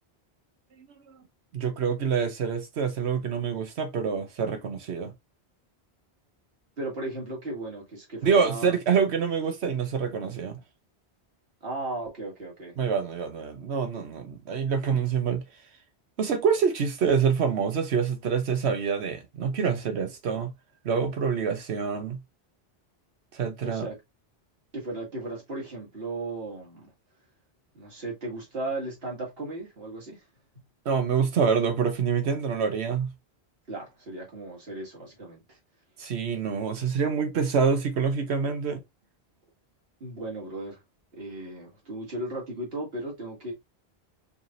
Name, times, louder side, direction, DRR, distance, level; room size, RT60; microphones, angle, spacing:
voice 1, 1.5-5.1 8.2-10.6 12.8-15.4 16.2-20.5 20.8-22.2 23.3-23.9 30.8-33.1 36.0-38.8, right 6 dB, 85° right, 1.1 m, -26 dB
voice 2, 6.8-8.8 11.6-12.7 23.6-24.0 24.7-26.9 27.7-30.2 33.7-35.6 40.0-40.8 41.1-43.5, right 2 dB, 65° right, 2.1 m, -36 dB
5.0 x 3.2 x 2.5 m
omnidirectional pair, 1.1 m